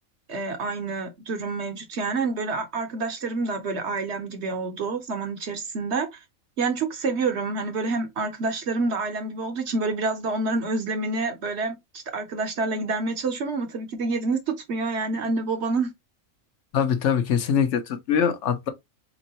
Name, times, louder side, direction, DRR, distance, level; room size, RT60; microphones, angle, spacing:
voice 1, 0.3-6.2 6.6-15.9, right 3 dB, 60° right, 0.9 m, -28 dB
voice 2, 16.7-18.7, left 7 dB, 60° left, 0.9 m, -23 dB
4.1 x 3.0 x 2.7 m
omnidirectional pair, 1.5 m